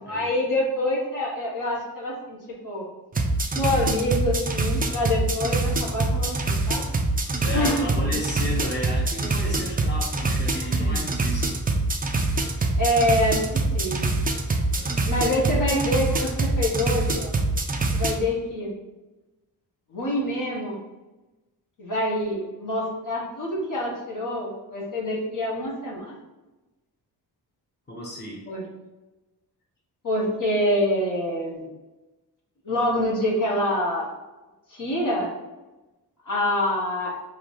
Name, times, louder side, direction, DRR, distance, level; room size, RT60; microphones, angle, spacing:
voice 1, 0.0-2.4 2.6-2.8 3.5-6.8 7.5-8.1 10.5-11.1 12.8-14.0 15.0-17.4 17.9-18.7 19.9-20.8 21.8-26.1 28.5-28.6 30.0-31.7 32.6-34.1 34.7-35.3 36.2-37.1, left 1 dB, 50° left, -4 dB, 1.2 m, -26 dB
sound 1, 3.1-18.1, right 2 dB, 20° right, 0.4 m, -24 dB
voice 2, 7.4-11.5 14.7-15.0 27.9-28.4, left 1 dB, 25° left, -4 dB, 1.1 m, -33 dB
3.8 x 2.8 x 4.6 m, 1.1 s
wide cardioid pair, 120°, 41 cm